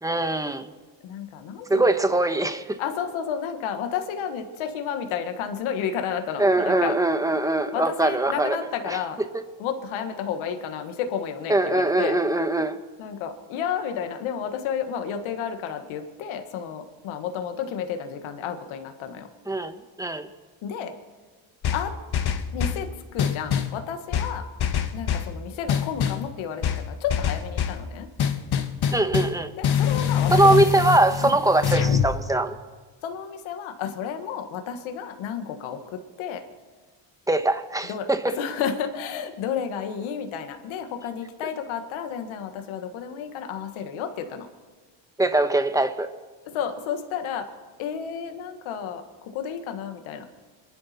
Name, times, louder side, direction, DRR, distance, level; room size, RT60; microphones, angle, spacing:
voice 1, 0.0-0.7 1.7-2.8 6.4-8.6 8.8-9.4 11.5-12.8 19.5-20.3 28.9-29.5 30.3-32.6 37.3-38.4 45.2-46.1, right 2 dB, 5° right, 1.4 m, -22 dB
voice 2, 1.0-1.8 2.8-6.9 7.7-9.2 9.6-12.2 13.0-19.3 20.6-20.9 21.7-21.9 22.5-24.4 24.9-26.6 27.0-28.1 29.5-30.6 31.2-31.3 33.0-35.8 36.2-36.4 37.9-38.1 38.4-44.5 46.5-47.5 47.8-49.0 49.3-50.2, left 8 dB, 85° left, 1.7 m, -31 dB
sound 1, 21.6-22.8 23.2-23.8 24.1-25.3 25.7-26.3 26.6-27.8 28.2-32.1, left 8 dB, 55° left, 1.5 m, -24 dB
27.5 x 11.5 x 4.3 m
supercardioid pair, 75°, 47 cm